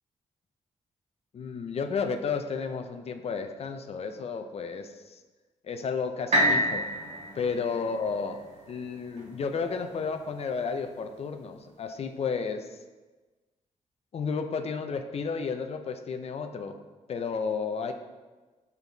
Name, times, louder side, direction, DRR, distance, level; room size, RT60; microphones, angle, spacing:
voice 1, 1.3-5.2 5.6-6.8 7.3-8.4 8.7-12.6 14.1-16.8 17.1-17.9, left 5 dB, 55° left, 7 dB, 0.5 m, -32 dB
sound 1, 6.3-10.3 10.8-10.9, equal, 60° right, 1.6 m, -29 dB
7.0 x 4.1 x 4.0 m, 1.3 s
cardioid pair, 100°, 13 cm